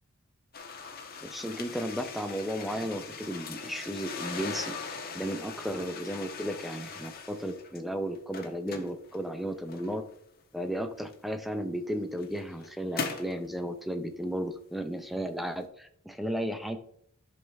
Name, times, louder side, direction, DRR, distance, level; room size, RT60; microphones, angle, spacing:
sound 1, 0.5-7.8 8.2-10.2 11.1-11.2 11.9-13.4, left 4 dB, 45° left, 1.2 m, -40 dB
voice 1, 1.2-4.7 5.1-10.0 10.5-16.8, equal, ahead, 8 dB, 0.6 m, -34 dB
11.0 x 5.4 x 3.5 m, 0.65 s
head